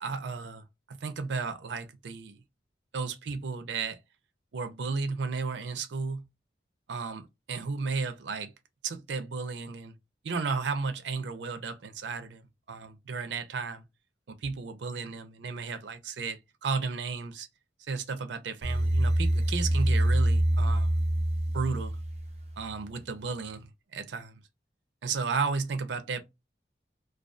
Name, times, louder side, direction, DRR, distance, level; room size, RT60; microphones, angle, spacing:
voice 1, 0.0-2.4 2.9-4.0 4.5-6.2 6.9-8.5 8.8-9.9 10.2-13.8 14.3-17.5 17.9-20.9 21.5-22.0 22.6-24.3 25.0-26.2, right 4 dB, 85° right, 0.5 m, -34 dB
sound 1, 18.6-22.7, right 1 dB, 35° right, 0.5 m, -26 dB
2.4 x 2.2 x 2.4 m
head